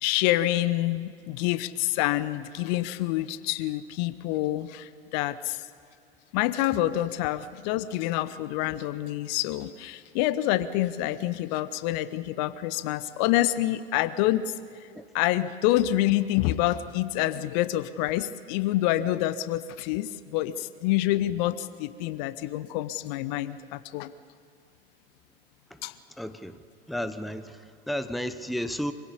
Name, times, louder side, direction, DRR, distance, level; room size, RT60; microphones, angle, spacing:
voice 1, 0.0-5.6 6.3-14.5 15.1-24.1 25.8-25.9, left 14 dB, 45° left, 15 dB, 0.8 m, -27 dB
voice 2, 26.2-26.6 26.9-28.9, equal, ahead, 11 dB, 0.8 m, -33 dB
25.5 x 16.5 x 8.4 m, 2.3 s
figure-of-eight pair, 80°, 30 cm